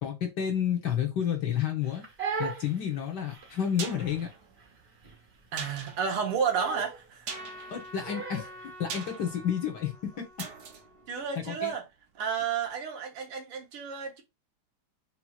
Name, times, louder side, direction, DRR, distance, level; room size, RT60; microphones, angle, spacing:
voice 1, 0.0-2.0 2.4-4.3 7.7-10.2 11.3-11.7, left 9 dB, 55° left, 1.5 m, -30 dB
Crying sobbing, 1.8-8.7, right 5 dB, 35° right, 1.1 m, -39 dB
sound 1, 3.4-12.2 12.5-12.6, right 6 dB, 65° right, 1.1 m, -44 dB
voice 2, 5.5-7.3 11.1-11.8 12.2-14.2, right 6 dB, 85° right, 2.0 m, -31 dB
Trumpet, 7.3-11.6, equal, 40° left, 1.4 m, -48 dB
5.7 x 2.9 x 2.4 m
omnidirectional pair, 2.4 m